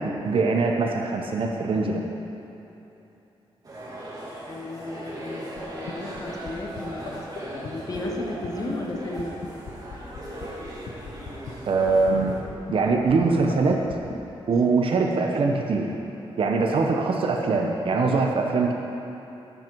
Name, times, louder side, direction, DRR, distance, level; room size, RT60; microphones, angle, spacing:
voice 1, 0.0-2.0 11.7-12.4 12.7-13.8 14.5-15.9 16.4-18.7, right 4 dB, 60° right, 1 dB, 0.9 m, -22 dB
sound 1, 3.6-12.4, right 1 dB, 35° right, 2.2 m, -38 dB
voice 2, 4.5-9.4, left 2 dB, 40° left, 1 dB, 1.0 m, -34 dB
sound 2, 5.6-5.7 5.9-6.2 6.5-6.6 6.8-6.9 7.1-7.2 7.4-7.5 7.6-7.7 7.9-14.1, left 7 dB, 80° left, 1.1 m, -36 dB
11.5 x 8.0 x 4.6 m, 3.0 s
wide cardioid pair, 120°, 10 cm